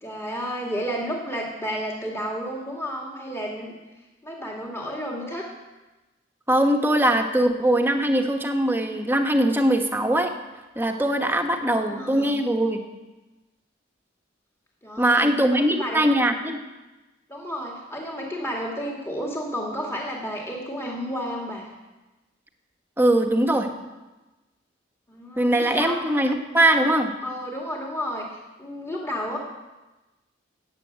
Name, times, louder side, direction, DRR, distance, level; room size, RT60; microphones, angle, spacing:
voice 1, 0.0-3.7 4.2-5.5 11.7-12.3 14.8-16.0 17.3-21.7 25.1-26.0 27.2-29.4, equal, 15° left, -1 dB, 2.1 m, -32 dB
voice 2, 6.5-10.3 10.7-12.8 15.0-16.6 23.0-23.7 25.4-27.1, right 1 dB, 10° right, 4 dB, 1.3 m, -21 dB
14.0 x 9.0 x 8.2 m, 1.1 s
head